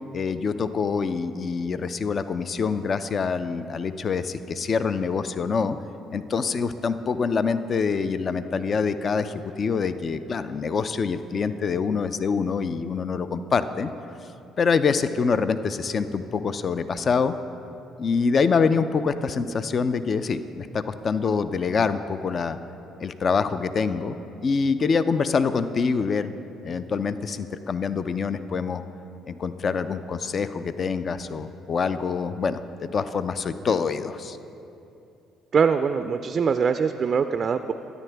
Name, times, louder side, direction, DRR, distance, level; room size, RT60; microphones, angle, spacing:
voice 1, 0.1-5.8 6.1-13.9 14.6-17.4 18.0-22.6 23.0-24.2 24.4-26.3 26.6-28.8 29.3-34.4, left 5 dB, 45° left, 12 dB, 0.4 m, -25 dB
voice 2, 35.5-37.7, right 6 dB, 45° right, 9 dB, 0.3 m, -23 dB
13.0 x 9.3 x 3.4 m, 2.8 s
supercardioid pair, 70°, 0 cm